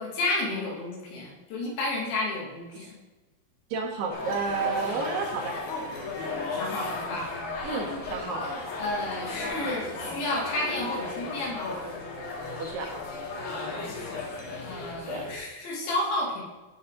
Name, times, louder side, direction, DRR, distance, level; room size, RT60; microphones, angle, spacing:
voice 1, 0.0-3.0 6.5-7.3 8.2-8.4 8.8-11.7 13.7-14.2 14.6-16.4, left 2 dB, 85° left, -4 dB, 4.9 m, -32 dB
voice 2, 3.7-5.6 7.6-8.5 12.6-12.9 15.1-15.3, right 4 dB, 75° right, 3 dB, 2.7 m, -31 dB
sound 1, 4.1-15.4, left 3 dB, 60° left, 3.2 m, -35 dB
15.5 x 5.5 x 3.7 m, 1.2 s
omnidirectional pair, 5.1 m